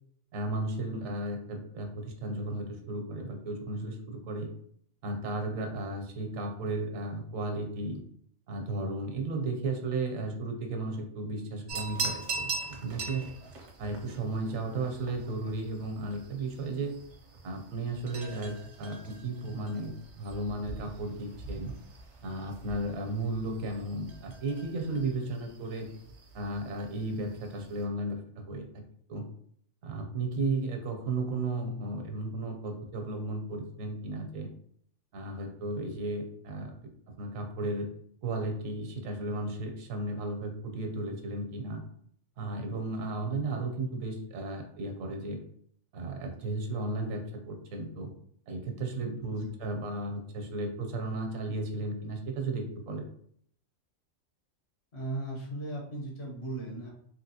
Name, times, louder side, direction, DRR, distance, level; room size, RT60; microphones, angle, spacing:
voice 1, 0.3-4.5 5.0-8.0 8.5-13.3 13.8-17.0 17.4-21.8 22.2-25.9 26.3-28.8 29.1-29.3 29.8-34.5 35.1-36.9 37.2-37.9 38.2-41.8 42.4-45.4 45.9-48.1 48.5-53.1, right 2 dB, 80° right, 4 dB, 1.0 m, -34 dB
sound 1, 11.7-27.9, right 3 dB, 55° right, 0.5 m, -42 dB
voice 2, 54.9-56.9, right 2 dB, 55° left, -2 dB, 1.2 m, -37 dB
3.3 x 2.8 x 2.7 m, 0.65 s
omnidirectional pair, 1.4 m